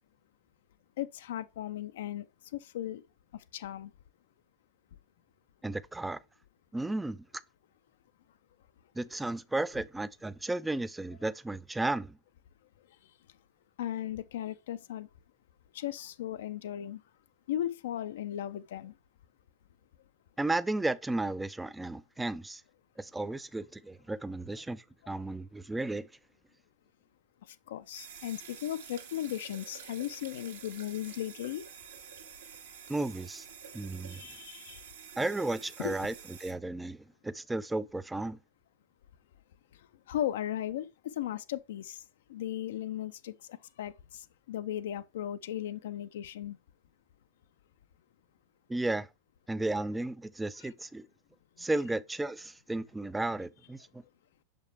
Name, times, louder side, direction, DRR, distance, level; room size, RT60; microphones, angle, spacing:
voice 1, 1.0-2.3 2.5-3.0 3.5-3.9 13.8-15.1 15.7-17.0 17.5-18.9 27.5-31.6 34.1-34.8 35.8-35.9 40.1-42.0 42.3-46.6 50.6-50.7, left 11 dB, 60° left, 0.4 m, -36 dB
voice 2, 5.6-6.2 6.7-7.2 9.0-12.2 20.4-22.6 23.0-26.1 32.9-33.5 33.7-34.2 35.2-36.1 36.4-38.4 48.7-49.1 49.5-51.1 51.6-54.0, right 2 dB, 5° right, 0.4 m, -34 dB
sound 1, 27.9-36.5, right 7 dB, 65° right, 1.4 m, -49 dB
6.4 x 5.2 x 3.3 m
figure-of-eight pair, 90°, 0 cm